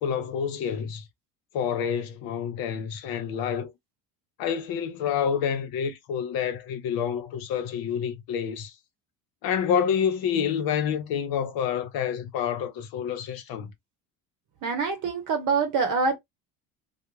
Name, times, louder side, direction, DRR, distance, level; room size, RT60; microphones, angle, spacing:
voice 1, 0.0-1.0 1.5-3.7 4.4-8.7 9.4-13.7, left 8 dB, 60° left, 0.8 m, -28 dB
voice 2, 14.6-16.2, right 4 dB, 50° right, 0.8 m, -25 dB
2.3 x 2.1 x 3.0 m
hypercardioid pair, 75°, 41 cm